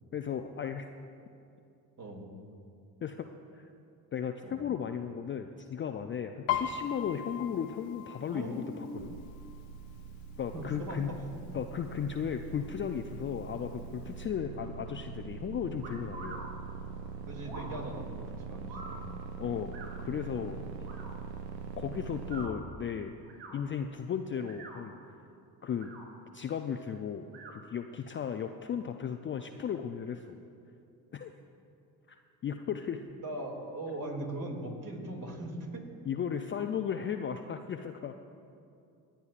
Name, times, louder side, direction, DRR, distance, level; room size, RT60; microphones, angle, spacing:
voice 1, 0.1-0.9 3.0-3.3 3.5-3.7 4.1-9.2 10.4-11.1 11.5-16.5 19.4-20.9 21.8-23.1 23.5-25.2 25.6-25.9 26.3-30.4 31.1-31.3 32.1-33.0 36.1-38.1, left 8 dB, 25° left, 6 dB, 0.5 m, -35 dB
Piano, 6.5-10.1 10.5-10.9 11.2-11.9 12.5-12.6 12.8-13.8 14.2-14.3, left 9 dB, 65° left, 0.9 m, -37 dB
voice 2, 8.3-8.9 10.5-11.2 17.3-19.1 33.2-35.9, right 1 dB, 40° right, 1 dB, 2.7 m, -40 dB
sound 1, 9.0-22.5, right 5 dB, 80° right, 0.8 m, -43 dB
sound 2, 15.8-16.4 17.4-17.7 18.7-19.0 19.7-19.9 20.8-21.1 22.2-22.5 23.2-23.5 24.4-24.8 25.7-26.0 27.3-27.5, right 3 dB, 60° right, 3.5 m, -46 dB
26.0 x 9.3 x 2.5 m, 2.5 s
figure-of-eight pair, 55°, 50 cm